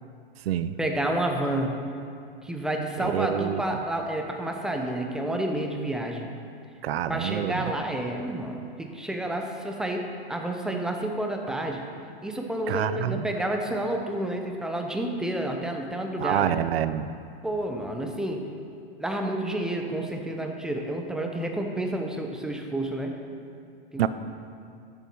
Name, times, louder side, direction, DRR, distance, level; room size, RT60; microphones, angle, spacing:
voice 1, 0.8-1.8 2.4-6.3 7.1-11.9 12.2-16.6 17.4-18.5 19.0-23.1 23.9-24.0, right 1 dB, ahead, 3 dB, 0.7 m, -30 dB
voice 2, 3.0-3.6 6.8-7.7 12.7-13.3 16.2-17.1 24.0-24.1, right 10 dB, 85° right, 13 dB, 0.6 m, -27 dB
12.5 x 7.2 x 4.7 m, 2.4 s
supercardioid pair, 145°, 29 cm